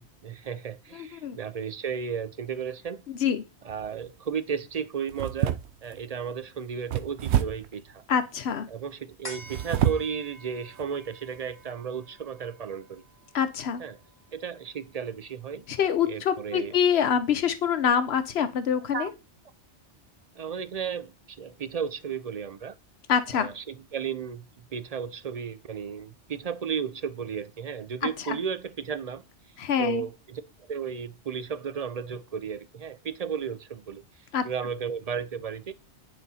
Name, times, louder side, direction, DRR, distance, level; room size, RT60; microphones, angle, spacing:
voice 1, 0.0-3.0 3.6-5.6 5.8-8.0 8.7-13.0 13.8-14.0 14.3-15.6 16.1-16.7 18.9-19.1 20.4-22.7 23.3-24.5 24.7-29.2 29.8-34.0 34.4-35.7, right 7 dB, 50° right, 0.5 m, -34 dB
sound 1, 3.7-4.1 5.1-6.0 6.9-7.8 9.3-10.2 10.7-10.8 11.4-11.5, right 11 dB, 75° right, 0.9 m, -28 dB
voice 2, 8.1-8.7 13.3-13.8 15.7-19.1 23.1-23.5 28.3-28.4 29.6-30.0 34.3-34.4, left 8 dB, 65° left, 1.1 m, -25 dB
sound 2, 9.2-16.0 16.4-16.5, equal, 20° left, 2.5 m, -49 dB
9.4 x 4.2 x 4.1 m
omnidirectional pair, 1.2 m